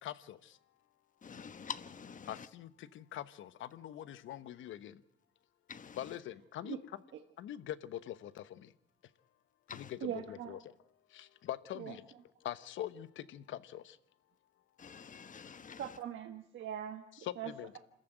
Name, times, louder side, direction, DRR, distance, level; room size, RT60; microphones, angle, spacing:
voice 1, 0.0-0.6 2.3-5.0 5.9-7.0 7.4-8.7 9.7-10.7 11.1-12.0 12.4-14.0 17.1-17.7, left 12 dB, 75° left, 1.0 m, -44 dB
voice 2, 1.2-2.5 5.7-6.2 9.7-9.9 14.8-16.0, left 6 dB, 40° left, 1.2 m, -47 dB
voice 3, 10.0-10.6 11.8-11.9 15.8-17.0 17.4-17.8, right 9 dB, 75° right, 1.4 m, -41 dB
27.0 x 14.5 x 9.0 m
cardioid pair, 90°, 20 cm